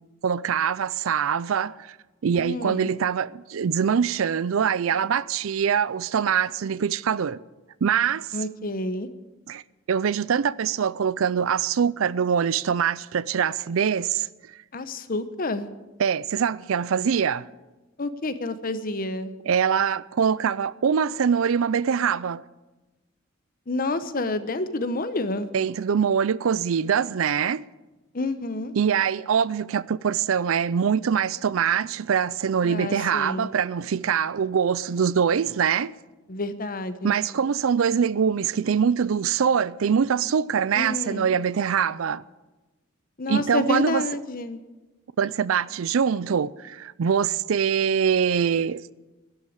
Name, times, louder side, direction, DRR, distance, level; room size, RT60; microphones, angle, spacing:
voice 1, 0.2-1.8 2.2-7.4 7.8-8.3 9.5-9.6 9.9-14.3 16.0-17.5 19.4-22.4 25.5-27.7 28.7-35.9 37.0-42.2 43.3-44.1 45.2-48.8, right 7 dB, 80° right, 0.4 m, -23 dB
voice 2, 2.4-2.9 8.3-9.1 14.7-15.7 18.0-19.3 23.7-25.5 28.1-28.7 32.6-33.5 36.3-37.2 40.7-41.3 43.2-44.6, left 2 dB, 45° left, 0.9 m, -29 dB
12.0 x 11.0 x 8.6 m
head